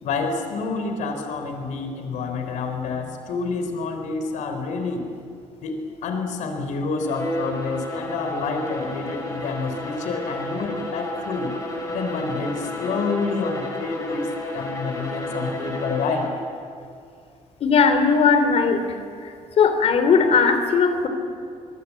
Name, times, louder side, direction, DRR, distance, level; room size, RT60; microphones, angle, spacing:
voice 1, 0.0-5.1 5.6-11.5 11.9-16.3, left 4 dB, 80° left, 6 dB, 3.7 m, -28 dB
Bowed string instrument, 7.0-16.5, left 1 dB, 25° left, 5.8 m, -32 dB
voice 2, 17.6-18.8 19.6-21.1, left 5 dB, 55° left, 8 dB, 3.1 m, -18 dB
25.0 x 22.0 x 8.5 m, 2.3 s
cardioid pair, 130°, 13 cm